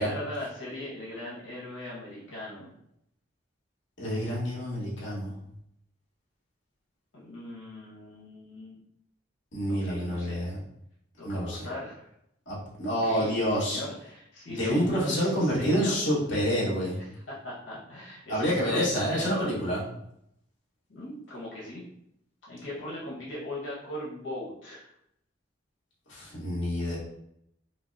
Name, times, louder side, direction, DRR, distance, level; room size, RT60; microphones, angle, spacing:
voice 1, 0.0-2.7 7.1-8.8 9.7-10.4 11.2-12.1 12.8-16.0 17.0-19.5 20.9-21.8 22.5-24.9, left 1 dB, 90° left, -6 dB, 1.3 m, -39 dB
voice 2, 4.0-5.3 9.5-10.6 11.2-11.6 12.5-13.8 14.5-17.0 18.3-19.8 26.1-27.0, equal, 70° left, -7 dB, 1.4 m, -28 dB
5.6 x 2.0 x 2.7 m, 0.76 s
head